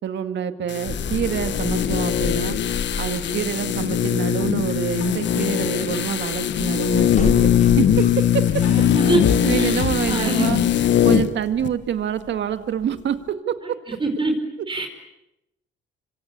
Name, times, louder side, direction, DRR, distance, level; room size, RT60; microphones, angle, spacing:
voice 1, 0.0-2.6 3.0-8.6 9.4-10.6 11.0-13.8, right 9 dB, 65° right, 9 dB, 2.1 m, -26 dB
sound 1, 0.7-11.4 11.6-11.7, left 10 dB, 65° left, 1.4 m, -21 dB
sound 2, 0.8-13.3, left 5 dB, 40° left, 3.3 m, -33 dB
sound 3, 4.4-9.9, left 6 dB, 85° left, 6.0 m, -33 dB
voice 2, 8.6-10.6 13.6-14.4 14.7-14.9, right 3 dB, 25° right, 5 dB, 4.8 m, -26 dB
26.5 x 25.0 x 8.4 m, 0.90 s
cardioid pair, 90°, 20 cm